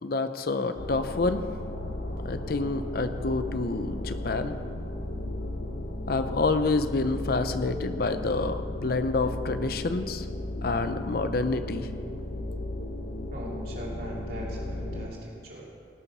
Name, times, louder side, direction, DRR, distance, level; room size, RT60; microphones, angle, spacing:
voice 1, 0.0-1.4 2.2-4.6 6.1-10.3 10.6-11.9, left 3 dB, 55° left, 10 dB, 0.6 m, -28 dB
sound 1, 0.8-15.1, left 1 dB, 75° left, 1.0 m, -35 dB
voice 2, 13.3-15.7, right 1 dB, 55° right, -4 dB, 3.1 m, -40 dB
18.5 x 6.9 x 6.0 m, 2.2 s
head